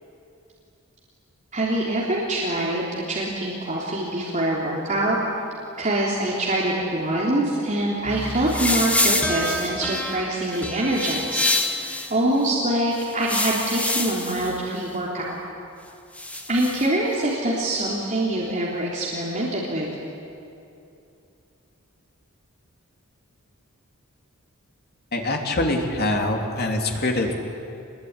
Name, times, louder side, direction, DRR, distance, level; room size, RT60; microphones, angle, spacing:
voice 1, 1.5-5.2 5.8-15.4 16.5-19.9, right 1 dB, 35° right, -5 dB, 3.5 m, -25 dB
sound 1, 8.1-12.1 12.9-14.6 16.1-16.9, left 1 dB, 5° left, 1.8 m, -26 dB
voice 2, 25.1-27.3, left 2 dB, 45° left, 2 dB, 3.3 m, -24 dB
26.0 x 21.5 x 9.7 m, 2.7 s
head